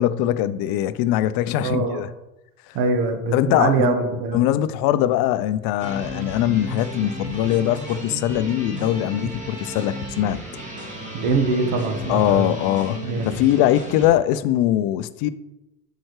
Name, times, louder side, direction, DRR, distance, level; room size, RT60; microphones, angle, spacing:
voice 1, 0.0-2.1 2.7-2.8 3.3-3.9 4.3-10.4 12.1-13.0 13.2-15.3, left 12 dB, 45° left, 0.5 m, -21 dB
voice 2, 1.6-2.0 2.7-4.4 11.1-12.6 13.0-13.4, right 3 dB, 60° right, 1.4 m, -23 dB
sound 1, 5.8-14.1, equal, 15° right, 2.4 m, -34 dB
11.0 x 4.6 x 3.3 m
hypercardioid pair, 85°, 50 cm